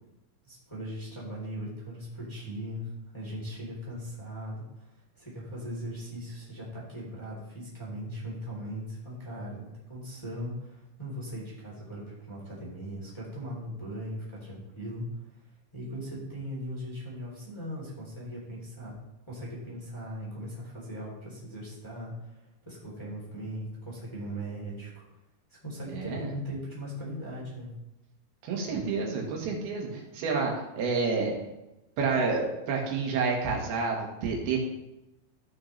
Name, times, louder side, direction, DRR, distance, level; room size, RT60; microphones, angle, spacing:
voice 1, 0.4-15.2 15.7-18.9 19.3-25.0 25.5-27.7, equal, 10° left, -6 dB, 2.8 m, -39 dB
voice 2, 25.9-26.3 28.4-31.4 32.0-34.6, right 4 dB, 80° right, 0 dB, 3.6 m, -29 dB
14.5 x 6.5 x 3.3 m, 0.95 s
omnidirectional pair, 4.4 m